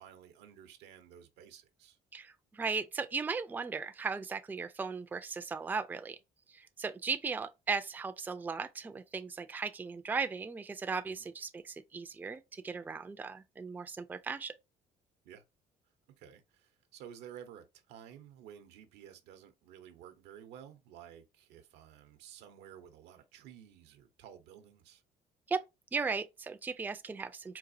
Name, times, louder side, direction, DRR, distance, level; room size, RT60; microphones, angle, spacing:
voice 1, 0.0-2.0 11.1-11.2 15.2-15.4 16.2-25.0, right 9 dB, 90° right, 0.7 m, -53 dB
voice 2, 2.1-6.2 6.5-14.5 25.5-25.6 25.9-27.6, right 5 dB, 10° right, 0.3 m, -37 dB
4.0 x 2.4 x 2.6 m
cardioid pair, 110°, 17 cm